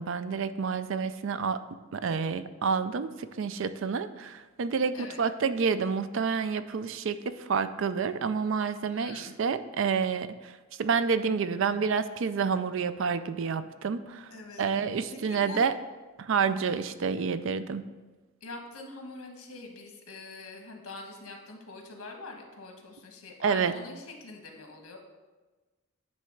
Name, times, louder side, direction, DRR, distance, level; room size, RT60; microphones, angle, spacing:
voice 1, 0.0-1.6 1.9-14.3 14.6-15.7 16.2-17.9 23.4-23.8, right 5 dB, 60° right, 12 dB, 0.4 m, -29 dB
voice 2, 8.9-9.3 14.3-14.7 15.1-15.6 18.4-25.0, left 3 dB, 80° left, 2 dB, 1.4 m, -44 dB
9.5 x 3.4 x 6.3 m, 1.2 s
head